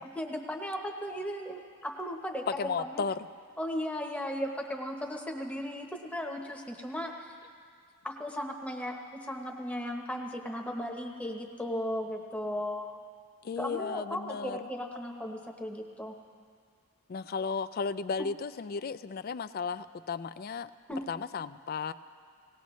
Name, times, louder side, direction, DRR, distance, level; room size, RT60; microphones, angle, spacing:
voice 1, 0.2-3.0 3.6-7.3 8.0-13.0 13.6-16.2 20.9-21.0, equal, 5° left, 1 dB, 0.9 m, -36 dB
voice 2, 2.5-3.2 13.4-14.7 17.1-20.7 21.1-21.9, left 5 dB, 45° left, 14 dB, 0.3 m, -34 dB
19.0 x 18.0 x 3.2 m, 2.2 s
head